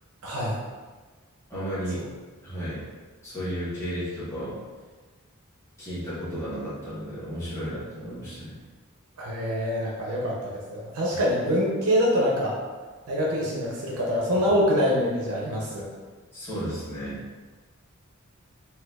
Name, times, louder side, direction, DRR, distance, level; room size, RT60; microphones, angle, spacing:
voice 1, 0.2-0.6 9.2-12.6 13.1-15.9, equal, 90° right, -4 dB, 0.6 m, -25 dB
voice 2, 1.5-2.0 2.4-2.8 3.2-4.6 5.8-8.6 16.3-17.2, equal, 15° left, -12 dB, 1.3 m, -33 dB
4.2 x 2.3 x 2.3 m, 1.4 s
head